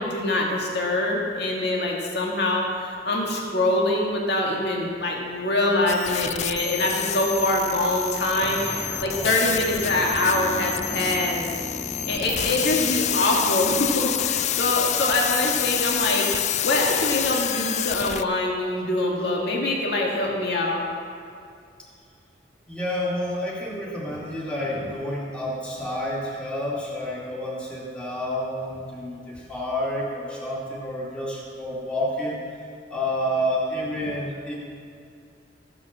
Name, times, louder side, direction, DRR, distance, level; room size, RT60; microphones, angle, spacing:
voice 1, 0.0-11.4 12.1-16.2 16.6-20.8, left 1 dB, 65° left, -1 dB, 2.0 m, -24 dB
sound 1, 5.9-18.2, left 11 dB, 40° left, 0.3 m, -28 dB
sound 2, 8.4-13.1, equal, 15° right, 0.7 m, -36 dB
voice 2, 22.7-32.4 32.9-34.5, equal, 5° left, -6 dB, 2.4 m, -29 dB
14.5 x 8.0 x 7.4 m, 2.4 s
head